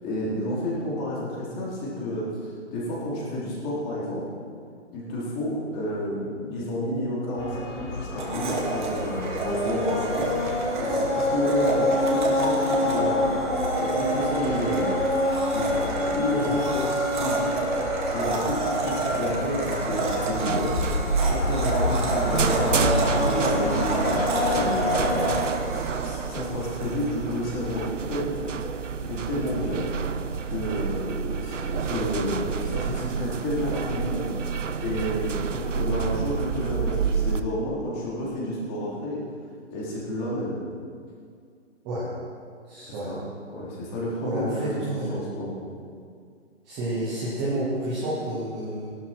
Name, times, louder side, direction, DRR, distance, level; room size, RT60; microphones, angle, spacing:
voice 1, 0.0-4.2 4.9-10.3 10.8-13.4 13.8-15.0 15.5-17.5 18.0-20.8 21.2-24.9 25.6-28.5 29.0-29.9 30.5-34.3 34.8-39.2 39.7-40.6 42.8-43.2 43.5-45.6, left 1 dB, 20° left, -6 dB, 3.6 m, -30 dB
sound 1, 7.4-25.4, left 2 dB, 80° left, 3.6 m, -27 dB
Domestic sounds home sounds, 8.2-27.0, right 3 dB, 40° right, 2.2 m, -30 dB
sound 2, 19.8-37.4, right 6 dB, 85° right, 1.0 m, -29 dB
voice 2, 42.7-43.1 44.2-45.2 46.6-48.9, right 1 dB, 5° right, -7 dB, 0.6 m, -30 dB
17.5 x 12.0 x 4.5 m, 2.2 s
hypercardioid pair, 160°, 37 cm